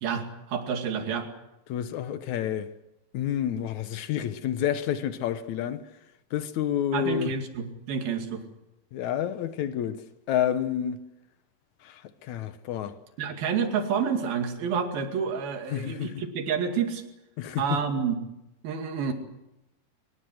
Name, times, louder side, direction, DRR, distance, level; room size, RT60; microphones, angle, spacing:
voice 1, 0.0-1.3 6.9-8.4 13.2-17.0 17.6-18.2 18.6-19.1, right 6 dB, 65° right, 4.1 m, -29 dB
voice 2, 1.7-2.7 3.1-5.8 6.3-7.3 8.9-10.0 10.3-11.0 11.8-13.0 15.7-16.2 17.4-17.8, left 10 dB, 75° left, 1.7 m, -29 dB
23.5 x 21.0 x 7.9 m
omnidirectional pair, 4.7 m